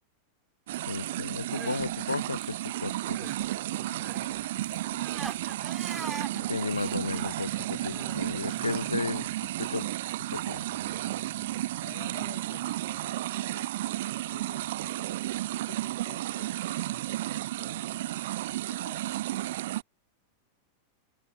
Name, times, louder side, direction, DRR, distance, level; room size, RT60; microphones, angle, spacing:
sound 1, 0.7-19.8, right 15 dB, 55° right, 0.8 m, -33 dB
voice 1, 0.9-2.6 2.8-3.2 6.3-9.2 9.6-9.9 10.3-10.6, left 4 dB, 80° left, 0.6 m, -34 dB
Crying sobbing, 1.3-3.5 3.7-8.8, right 3 dB, 10° right, 2.3 m, -44 dB
voice 2, 3.7-6.0 7.9-9.2 11.8-15.2 15.5-19.5, left 36 dB, 45° left, 2.3 m, -53 dB
sound 2, 5.4-13.1 14.3-14.4 14.7-14.9, left 10 dB, 25° left, 3.1 m, -56 dB
figure-of-eight pair, 90°, 0 cm